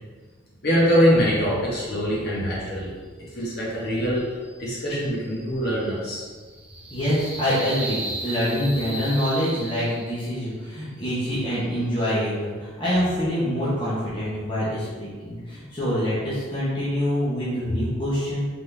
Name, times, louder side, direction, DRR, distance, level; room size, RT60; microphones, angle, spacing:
voice 1, 0.6-2.9 3.3-4.2 4.6-6.2, equal, 50° left, -7 dB, 1.4 m, -23 dB
sound 1, 4.4-10.4, right 1 dB, 5° right, 0.5 m, -36 dB
voice 2, 6.9-18.5, equal, 25° left, -10 dB, 1.0 m, -25 dB
3.8 x 3.7 x 3.4 m, 1.5 s
head